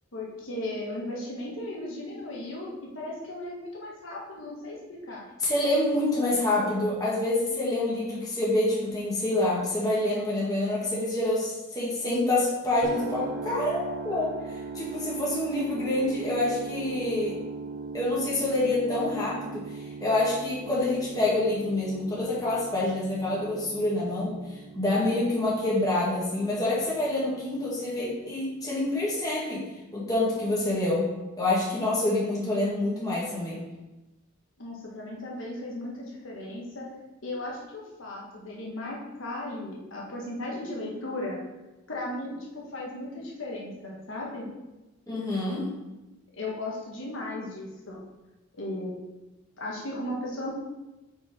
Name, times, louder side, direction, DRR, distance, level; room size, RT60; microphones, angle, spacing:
voice 1, 0.1-4.8 5.1-5.3 5.9-6.8 34.6-36.9 37.2-41.4 41.9-44.5 46.3-48.0 48.6-49.0 49.6-50.5, left 1 dB, 70° left, -3 dB, 1.3 m, -36 dB
voice 2, 5.4-17.4 17.9-19.6 20.0-24.4 24.8-29.6 29.9-31.1 31.4-33.6 45.1-45.7, left 2 dB, 15° left, -6 dB, 1.7 m, -27 dB
sound 1, 12.8-28.8, right 4 dB, 50° right, 0.6 m, -40 dB
5.3 x 4.3 x 5.0 m, 1.0 s
head